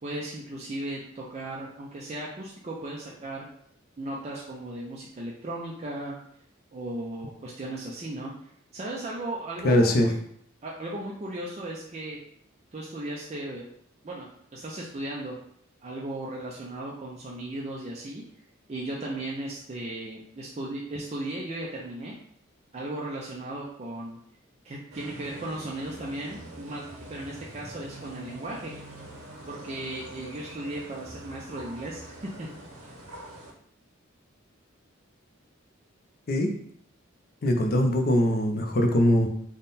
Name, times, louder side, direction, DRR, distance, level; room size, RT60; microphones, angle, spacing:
voice 1, 0.0-3.5 4.0-6.2 6.7-8.3 8.7-10.1 10.6-12.2 12.7-13.6 14.0-15.3 15.8-18.2 18.7-22.1 22.7-24.2 24.6-28.7 29.5-32.5, right 1 dB, 30° right, -3 dB, 0.4 m, -36 dB
voice 2, 9.6-10.1 36.3-36.6 37.4-39.3, left 1 dB, 45° left, 4 dB, 0.5 m, -22 dB
sound 1, 24.9-33.5, right 1 dB, 90° right, 0.8 m, -44 dB
3.6 x 2.1 x 4.0 m, 0.67 s
head